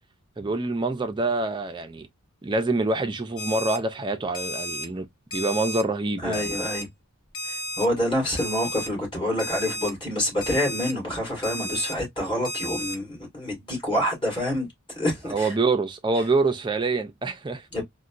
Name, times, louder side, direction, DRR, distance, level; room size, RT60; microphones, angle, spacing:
voice 1, 0.4-2.1 2.4-5.1 5.3-6.4 15.3-17.7, right 3 dB, 20° right, 0.4 m, -26 dB
Alarm, 3.4-3.8 4.3-4.9 5.3-5.8 6.3-6.8 7.3-7.9 8.4-8.9 9.4-9.9 10.4-10.9 11.4-11.9 12.4-13.0, equal, 60° left, 1.0 m, -32 dB
voice 2, 6.2-6.9 7.5-14.7 14.9-15.5 17.7-17.8, left 1 dB, 20° left, 2.2 m, -27 dB
3.9 x 2.2 x 2.4 m
head